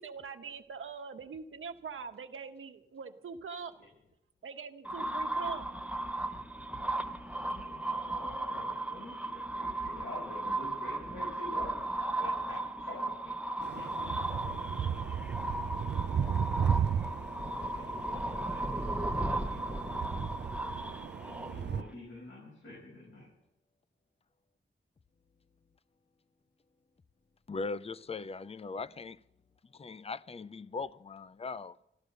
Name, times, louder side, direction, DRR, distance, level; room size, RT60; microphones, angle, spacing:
voice 1, 0.0-3.7 4.4-5.7, right 5 dB, 90° right, 1.1 m, -43 dB
sound 1, 4.9-21.9, right 1 dB, 5° right, 0.9 m, -36 dB
voice 2, 7.3-14.1 17.6-19.7 21.2-23.3, left 2 dB, 85° left, 5.8 m, -48 dB
sound 2, 13.6-21.8, right 7 dB, 60° right, 0.6 m, -35 dB
voice 3, 27.5-29.2 29.7-31.8, left 4 dB, 30° left, 0.5 m, -39 dB
14.0 x 12.5 x 6.6 m
wide cardioid pair, 70°, 20 cm